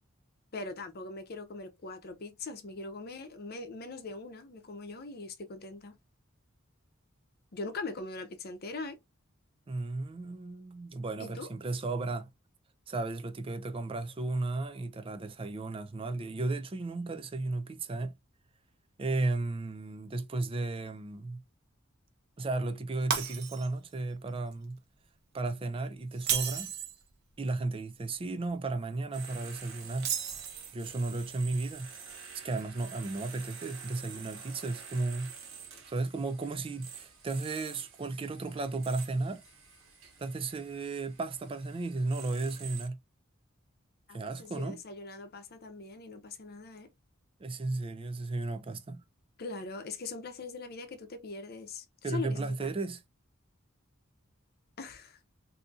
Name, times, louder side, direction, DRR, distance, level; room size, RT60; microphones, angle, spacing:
voice 1, 0.5-6.0 7.5-9.0 11.2-11.5 44.1-46.9 49.4-52.7 54.8-55.2, left 3 dB, 50° left, 0.7 m, -41 dB
voice 2, 9.7-12.3 12.9-18.1 19.0-21.4 22.4-24.8 25.3-26.7 27.4-30.1 30.7-31.9 32.3-35.3 35.9-39.4 40.2-43.0 44.1-44.8 47.4-49.0 52.0-53.0, right 3 dB, 25° right, 0.4 m, -34 dB
Shatter, 23.1-23.9 24.3-24.5 26.1-27.0 30.0-30.9, right 8 dB, 55° right, 0.8 m, -33 dB
sound 1, 29.1-42.9, right 7 dB, 70° right, 1.3 m, -48 dB
3.6 x 2.7 x 2.6 m
head